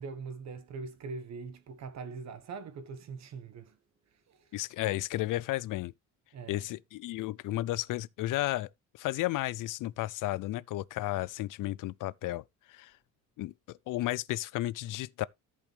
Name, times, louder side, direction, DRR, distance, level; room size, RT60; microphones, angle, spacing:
voice 1, 0.0-3.8 4.1-4.5 6.3-6.7, right 4 dB, 55° right, 1.3 m, -42 dB
voice 2, 4.5-5.9 6.5-12.9 13.4-15.3, left 16 dB, 70° left, 0.5 m, -33 dB
14.0 x 5.2 x 3.3 m
cardioid pair, 165°, 33 cm